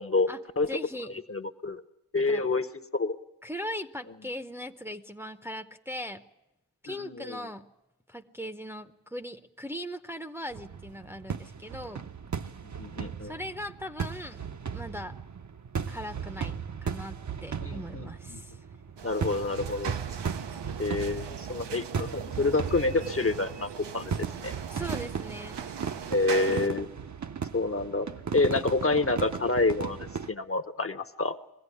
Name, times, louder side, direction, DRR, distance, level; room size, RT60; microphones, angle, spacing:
voice 1, 0.7-1.2 2.3-2.5 3.4-6.2 6.8-7.7 8.1-12.1 13.2-15.1 15.9-18.6 24.7-25.6, equal, 5° right, 6 dB, 0.8 m, -39 dB
voice 2, 1.3-1.8 2.1-2.7 2.9-3.2 6.9-7.4 12.8-13.3 17.6-18.4 19.0-19.9 20.8-24.6 26.1-26.9 27.5-28.1 28.3-31.4, left 3 dB, 35° left, 8 dB, 0.9 m, -28 dB
sound 1, 10.5-30.3, right 6 dB, 45° right, 0.8 m, -36 dB
sound 2, 19.0-26.7, right 8 dB, 80° right, 0.9 m, -40 dB
22.0 x 15.5 x 9.9 m, 0.96 s
cardioid pair, 70°, 41 cm